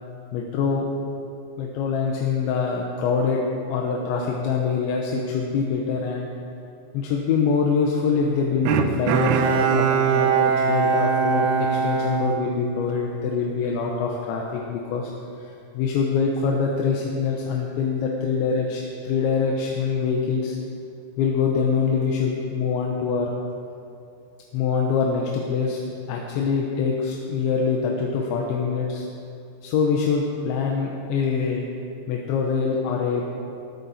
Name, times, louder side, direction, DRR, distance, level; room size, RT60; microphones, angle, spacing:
voice 1, 0.3-1.0 1.6-3.4 3.7-6.3 6.9-15.1 15.4-20.6 21.2-23.3 24.5-25.8 26.1-29.1 29.6-31.7 32.1-33.2, left 5 dB, 85° left, -1 dB, 3.5 m, -24 dB
Bowed string instrument, 8.7-13.2 13.6-13.7, right 7 dB, 80° right, 2.6 m, -22 dB
21.5 x 14.0 x 4.2 m, 2.6 s
omnidirectional pair, 5.1 m